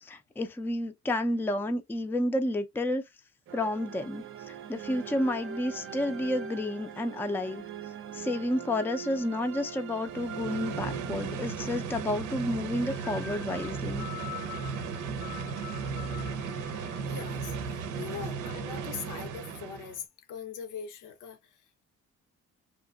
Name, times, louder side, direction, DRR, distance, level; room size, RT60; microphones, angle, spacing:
voice 1, 0.0-3.0 3.5-7.6 8.1-14.1, left 1 dB, 5° left, 0.4 m, -31 dB
sound 1, 3.5-11.8, right 8 dB, 45° right, 0.5 m, -41 dB
sound 2, 10.0-20.0, right 5 dB, 90° right, 0.7 m, -36 dB
sound 3, 12.8-17.9, left 11 dB, 55° left, 0.7 m, -46 dB
voice 2, 17.1-21.4, left 7 dB, 85° left, 0.8 m, -41 dB
2.8 x 2.5 x 2.3 m
cardioid pair, 90°, 30 cm